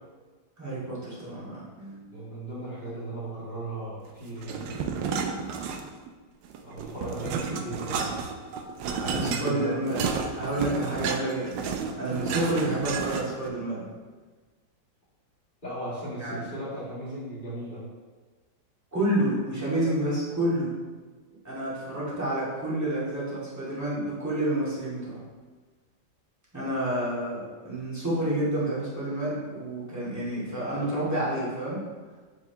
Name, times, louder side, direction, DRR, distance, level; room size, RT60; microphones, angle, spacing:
voice 1, 0.6-2.2 9.1-11.6 12.0-13.8 16.2-16.5 18.9-20.8 21.4-25.2 26.5-31.8, right 1 dB, 10° right, -8 dB, 2.0 m, -29 dB
voice 2, 2.1-5.1 6.6-8.1 8.9-9.8 12.2-12.3 15.6-17.8, right 1 dB, 25° left, -10 dB, 2.2 m, -37 dB
sound 1, 4.4-6.1 6.5-13.5, right 6 dB, 90° right, 1.3 m, -32 dB
7.0 x 4.9 x 3.4 m, 1.4 s
omnidirectional pair, 1.9 m